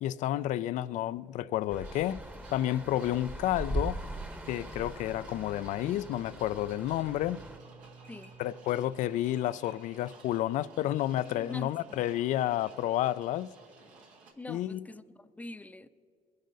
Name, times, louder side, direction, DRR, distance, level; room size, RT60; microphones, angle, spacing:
voice 1, 0.0-2.2 2.5-4.1 4.5-7.4 8.4-13.5 14.5-14.8, left 13 dB, 75° left, 0.4 m, -30 dB
sound 1, 1.7-7.6, right 1 dB, 10° right, 1.0 m, -40 dB
sound 2, 1.8-14.3, right 4 dB, 85° right, 1.9 m, -56 dB
Bowed string instrument, 5.6-10.3, right 4 dB, 90° left, 1.4 m, -56 dB
voice 2, 11.3-11.8 14.4-15.9, left 2 dB, 10° left, 0.6 m, -44 dB
22.0 x 10.5 x 4.0 m
supercardioid pair, 80°, 13 cm